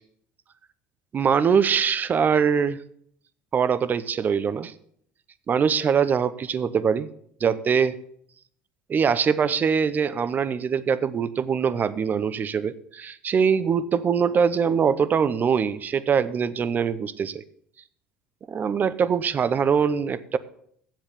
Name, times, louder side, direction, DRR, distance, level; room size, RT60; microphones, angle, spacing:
voice 1, 1.1-2.8 3.5-4.7 5.5-7.1 7.4-8.0 8.9-17.4 18.5-20.4, right 6 dB, 35° right, 16 dB, 0.6 m, -23 dB
7.4 x 7.4 x 6.6 m, 0.65 s
supercardioid pair, 95°, 5 cm